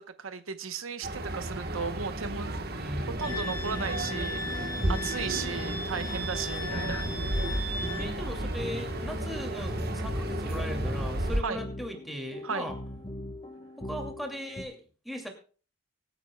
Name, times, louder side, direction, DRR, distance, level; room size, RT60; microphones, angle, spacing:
voice 1, 0.0-2.5 3.1-7.1 11.4-11.6 12.4-12.7, right 5 dB, 80° right, 10 dB, 0.9 m, -35 dB
sound 1, 1.0-11.4, right 1 dB, 50° right, 1.3 m, -33 dB
voice 2, 2.7-3.3 5.1-5.5 6.6-7.0 8.0-12.7 13.8-15.3, equal, ahead, 2 dB, 2.5 m, -39 dB
Wind instrument woodwind instrument, 3.2-8.1, left 1 dB, 50° left, 2.8 m, -38 dB
sound 2, 3.3-14.6, left 1 dB, 25° left, 1.1 m, -40 dB
24.0 x 9.2 x 2.3 m, 0.38 s
head